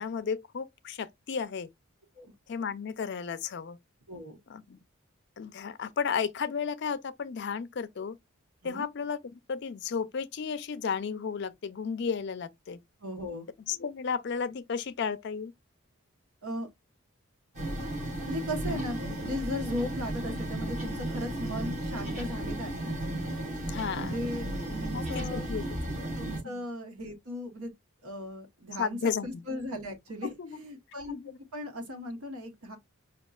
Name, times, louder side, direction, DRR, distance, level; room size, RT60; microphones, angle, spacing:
voice 1, 0.0-1.7 2.5-3.8 4.5-4.8 5.4-8.2 8.6-12.8 13.7-15.5 18.7-18.8 23.7-24.2 24.9-26.1 26.4-26.7 28.8-29.4 30.4-30.6 31.1-31.4, left 6 dB, 50° left, 0.4 m, -33 dB
voice 2, 4.1-4.4 8.6-8.9 13.0-13.5 16.4-16.7 18.2-23.0 23.9-25.5 26.2-27.7 28.0-31.1 31.5-32.8, left 1 dB, 85° right, 1.1 m, -37 dB
sound 1, 17.5-26.4, right 1 dB, 35° right, 1.1 m, -34 dB
5.1 x 2.3 x 2.3 m
head